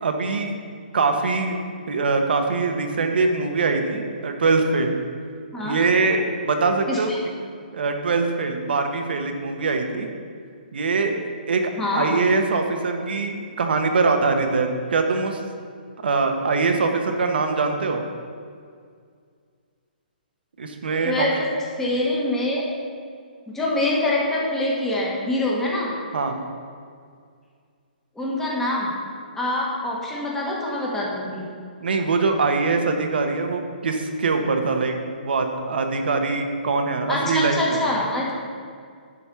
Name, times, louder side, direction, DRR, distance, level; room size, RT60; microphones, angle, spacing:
voice 1, 0.0-0.6 0.9-1.6 1.9-4.9 5.6-7.1 7.7-10.1 10.7-11.1 11.5-15.4 16.0-18.0 20.6-21.3 26.1-26.4 31.8-37.8, right 4 dB, 75° right, 4 dB, 1.3 m, -23 dB
voice 2, 11.8-12.1 21.0-21.5 21.8-22.6 23.5-25.9 28.1-28.9 29.3-31.5 37.1-38.3, left 1 dB, 5° left, -4 dB, 1.5 m, -25 dB
11.0 x 4.2 x 7.0 m, 2.1 s
hypercardioid pair, 160°, 5 cm